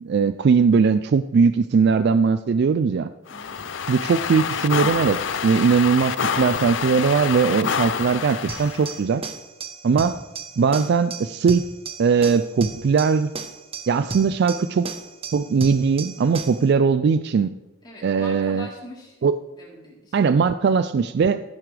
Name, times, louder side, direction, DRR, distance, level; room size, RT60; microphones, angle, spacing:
voice 1, 0.0-3.1 3.9-5.2 5.4-9.2 9.8-10.2 10.6-11.7 12.0-13.3 13.9-14.9 15.3-17.5 18.0-18.7 19.2-19.4 20.1-21.4, right 5 dB, 50° right, 12 dB, 0.3 m, -20 dB
sound 1, 3.3-9.0, left 6 dB, 60° left, 0.6 m, -27 dB
voice 2, 3.3-3.7 17.8-19.2 19.5-20.4, left 1 dB, 20° left, -4 dB, 3.5 m, -42 dB
sound 2, 8.5-16.7, right 4 dB, 25° right, 0.9 m, -35 dB
15.0 x 9.5 x 3.3 m, 1.0 s
head